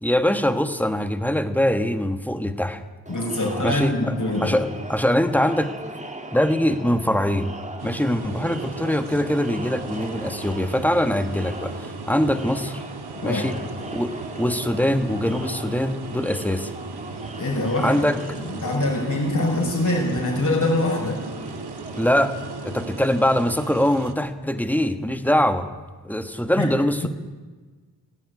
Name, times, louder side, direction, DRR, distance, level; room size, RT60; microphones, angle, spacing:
voice 1, 0.0-2.8 3.6-4.1 4.4-5.7 6.3-7.5 7.8-12.8 13.2-13.6 13.9-16.7 17.8-18.4 22.0-22.3 22.6-25.7 26.0-27.1, left 1 dB, 5° left, 8 dB, 1.4 m, -23 dB
voice 2, 3.1-4.6 13.2-13.5 17.3-18.0 18.4-21.2 26.6-26.7 27.0-27.1, left 1 dB, 50° left, 0 dB, 6.5 m, -24 dB
Crowd, 3.1-23.0, right 2 dB, 20° right, 1.9 m, -39 dB
sound 1, 7.8-24.1, right 4 dB, 80° right, 1.5 m, -38 dB
17.5 x 17.0 x 9.7 m, 1.3 s
wide cardioid pair, 135°, 38 cm